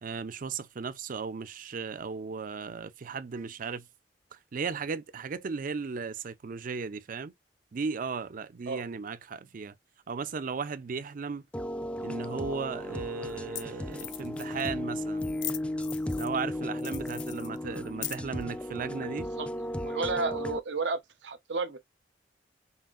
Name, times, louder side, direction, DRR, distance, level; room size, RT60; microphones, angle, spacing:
voice 1, 0.0-3.9 4.3-7.3 7.7-9.7 10.1-11.5 12.0-15.3 16.2-19.3, right 5 dB, 50° right, 0.5 m, -36 dB
sound 1, 11.5-20.6, left 1 dB, 5° left, 0.3 m, -35 dB
sound 2, 12.5-12.6 13.3-13.4 13.6-13.7 13.9-14.7 15.2-16.4 16.8-18.4, left 15 dB, 80° left, 0.5 m, -40 dB
voice 2, 19.8-21.8, right 3 dB, 80° right, 0.8 m, -32 dB
5.5 x 2.5 x 2.4 m
head